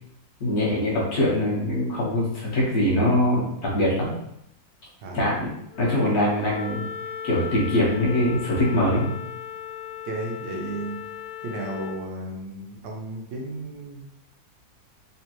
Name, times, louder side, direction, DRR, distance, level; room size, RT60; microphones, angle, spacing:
voice 1, 0.4-4.1 5.1-5.5 5.8-6.8 7.2-9.1, left 1 dB, 60° left, -5 dB, 1.5 m, -23 dB
Wind instrument woodwind instrument, 5.7-12.0, left 8 dB, 90° left, 1.3 m, -37 dB
voice 2, 10.1-11.0 11.4-14.1, right 2 dB, 80° right, 0 dB, 1.4 m, -33 dB
3.6 x 3.3 x 2.9 m, 0.78 s
omnidirectional pair, 2.0 m